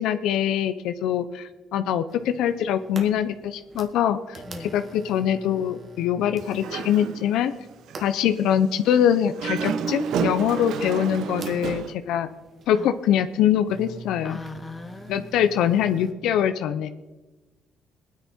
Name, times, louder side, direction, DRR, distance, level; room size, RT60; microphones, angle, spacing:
voice 1, 0.0-7.5 8.0-12.3 12.7-14.4 15.1-16.9, left 9 dB, 90° left, 10 dB, 0.6 m, -23 dB
sound 1, 2.1-16.1, right 3 dB, 50° right, 1.8 m, -45 dB
voice 2, 4.5-4.8 12.8-12.9 14.2-15.4, left 3 dB, 20° left, 5 dB, 2.0 m, -39 dB
Dog, 6.4-7.5 7.9-8.0 9.3-11.9, right 6 dB, 80° right, 0.8 m, -30 dB
21.0 x 9.9 x 4.4 m, 1.1 s
cardioid pair, 90°, 0 cm